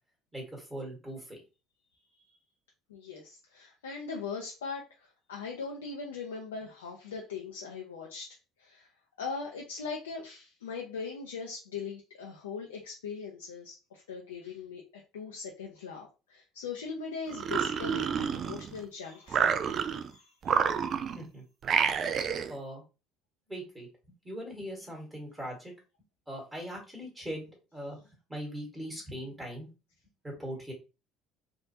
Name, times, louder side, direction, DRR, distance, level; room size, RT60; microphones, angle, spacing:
voice 1, 0.3-1.4 21.1-21.4 22.5-22.8 23.5-23.9 24.2-25.7 26.3-27.5 27.7-28.0 28.3-29.7 30.2-30.7, equal, 15° right, -1 dB, 1.6 m, -40 dB
voice 2, 2.9-8.9 9.2-14.8 15.1-19.9 20.1-20.6, left 5 dB, 80° left, 0 dB, 0.5 m, -40 dB
sound 1, 17.3-18.8 19.3-20.1 20.4-21.2 21.6-22.5, right 7 dB, 45° right, 0.3 m, -29 dB
3.4 x 2.5 x 2.8 m, 0.31 s
figure-of-eight pair, 60°, 0 cm